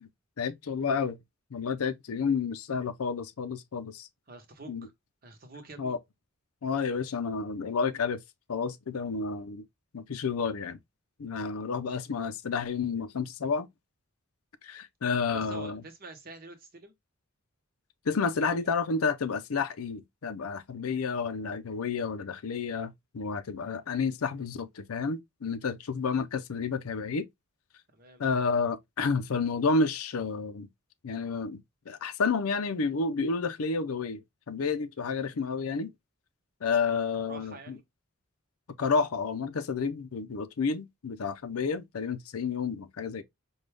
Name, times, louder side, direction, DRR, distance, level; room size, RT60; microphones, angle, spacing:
voice 1, 0.4-1.2 1.5-4.1 4.7-4.9 5.8-6.0 6.6-8.2 8.5-9.6 9.9-10.8 11.2-13.7 14.6-15.8 18.1-27.3 28.2-30.7 31.0-35.9 36.6-37.8 38.8-43.2, left 5 dB, 90° left, 0.5 m, -30 dB
voice 2, 4.3-4.9 5.2-6.0 15.3-16.9 18.3-18.7 27.9-28.2 36.9-37.8, right 3 dB, 45° right, 1.0 m, -47 dB
5.3 x 2.3 x 3.3 m
head